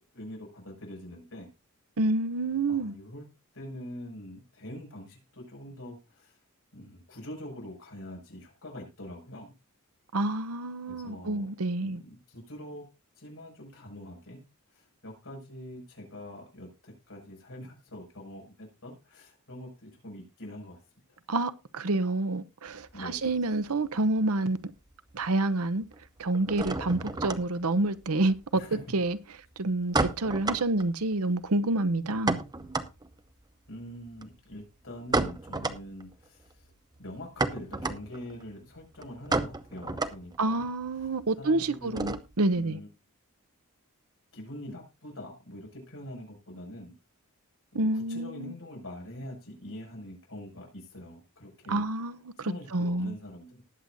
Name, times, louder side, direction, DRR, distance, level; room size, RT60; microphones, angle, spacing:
voice 1, 0.1-1.5 2.7-3.3 3.5-6.4 6.7-9.5 10.9-11.5 11.8-12.8 13.2-20.8 22.9-23.3 28.5-28.8 30.0-30.1 33.7-36.7 37.0-40.7 41.0-42.2 42.5-42.9 44.3-47.0 47.7-51.8 52.4-53.6, left 1 dB, 65° left, 6.5 m, -44 dB
voice 2, 2.0-2.9 10.1-12.0 21.3-24.6 25.1-25.8 26.2-28.6 28.9-29.2 29.6-32.4 40.4-42.8 47.7-48.5 51.7-52.2 52.7-53.1, right 2 dB, 70° right, 0.8 m, -28 dB
sound 1, 22.7-24.3 24.6-25.3 25.5-42.5, right 3 dB, 20° right, 0.8 m, -34 dB
19.5 x 7.9 x 2.6 m
head